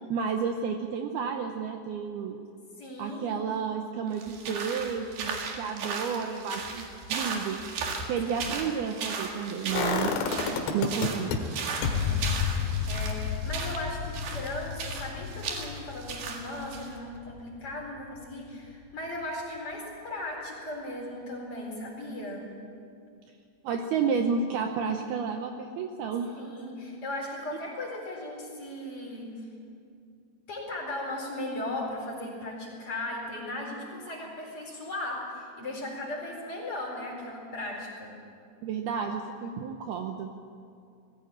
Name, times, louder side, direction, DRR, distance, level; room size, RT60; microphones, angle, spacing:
voice 1, 0.1-2.4 3.0-7.6 8.0-10.2 10.7-11.3 23.6-26.5 38.6-40.3, right 6 dB, 75° right, 4 dB, 2.5 m, -31 dB
voice 2, 2.8-3.4 8.4-8.5 11.6-22.5 26.4-29.5 30.5-38.1, left 1 dB, 30° left, -2 dB, 4.7 m, -37 dB
sound 1, 4.1-16.9, right 5 dB, 60° right, 3.6 m, -36 dB
sound 2, 9.8-11.4 11.8-17.7 18.0-18.1, left 7 dB, 75° left, 3.8 m, -31 dB
20.5 x 15.0 x 8.9 m, 2.4 s
omnidirectional pair, 5.3 m